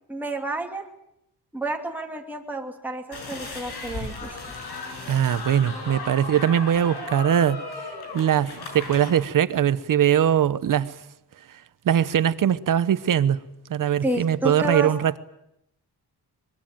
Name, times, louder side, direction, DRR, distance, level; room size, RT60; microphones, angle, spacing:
voice 1, 0.1-0.8 1.5-4.3 14.0-14.9, right 2 dB, 5° right, 2.6 m, -30 dB
sound 1, 3.1-9.1, left 3 dB, 70° left, 7.3 m, -36 dB
voice 2, 5.1-7.6 8.1-10.9 11.8-13.4 13.7-15.2, right 9 dB, 50° right, 0.9 m, -21 dB
23.0 x 22.5 x 9.0 m
wide cardioid pair, 160°, 40 cm